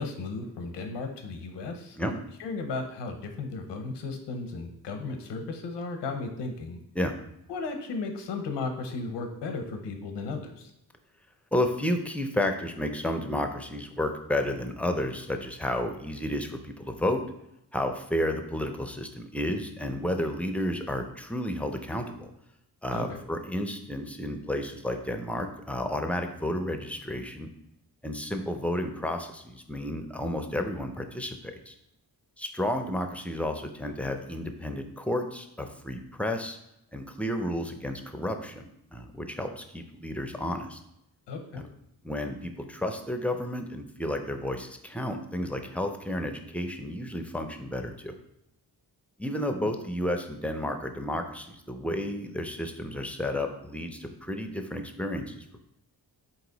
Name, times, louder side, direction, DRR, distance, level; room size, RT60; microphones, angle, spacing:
voice 1, 0.0-6.8 7.5-10.7 22.9-23.2 41.3-41.6 49.6-49.7, left 3 dB, 85° left, 5 dB, 0.8 m, -35 dB
voice 2, 11.5-17.3 17.7-22.3 22.8-27.5 28.0-31.7 32.4-36.6 36.9-40.8 41.5-41.6 42.0-48.1 49.2-55.7, left 1 dB, 5° left, 5 dB, 0.5 m, -32 dB
4.1 x 2.9 x 3.9 m, 0.81 s
cardioid pair, 65°, 41 cm